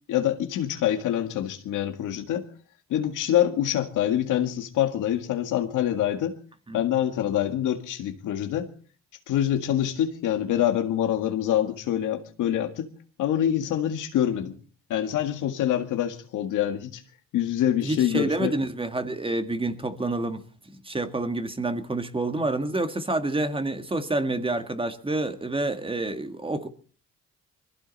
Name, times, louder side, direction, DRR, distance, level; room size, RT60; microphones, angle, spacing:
voice 1, 0.1-2.5 2.9-6.4 6.7-8.7 9.3-12.9 13.2-14.6 14.9-17.0 17.3-18.5, left 11 dB, 85° left, 1.9 m, -25 dB
voice 2, 17.8-26.7, right 2 dB, 15° right, 1.8 m, -28 dB
21.5 x 15.0 x 4.1 m
cardioid pair, 90°, 30 cm